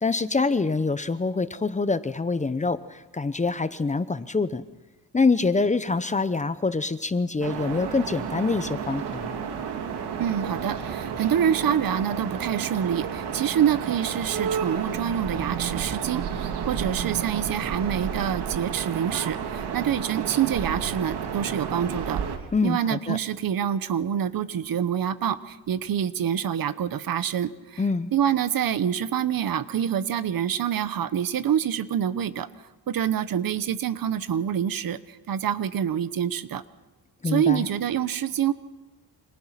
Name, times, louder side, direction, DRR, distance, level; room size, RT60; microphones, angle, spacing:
voice 1, 0.0-4.6 5.1-9.4 22.5-23.2 27.8-28.1 37.2-37.6, left 3 dB, 20° left, 13 dB, 0.8 m, -25 dB
sound 1, 7.4-22.4, right 7 dB, 90° right, 2.7 m, -31 dB
voice 2, 10.2-22.2 22.6-27.8 28.1-32.5 32.9-36.6 37.2-38.5, right 9 dB, 60° right, 14 dB, 1.2 m, -26 dB
29.0 x 26.5 x 5.9 m, 1.1 s
cardioid pair, 135°, 39 cm